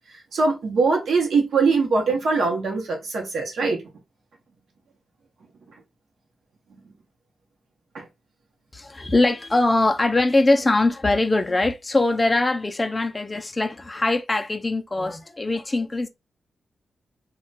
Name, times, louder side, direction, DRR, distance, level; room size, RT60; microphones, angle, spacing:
voice 1, 0.3-3.8 7.9-8.0, right 4 dB, 75° right, 0.7 m, -22 dB
voice 2, 8.7-16.1, left 2 dB, 20° left, 0.3 m, -22 dB
2.2 x 2.2 x 3.8 m
wide cardioid pair, 175°, 0 cm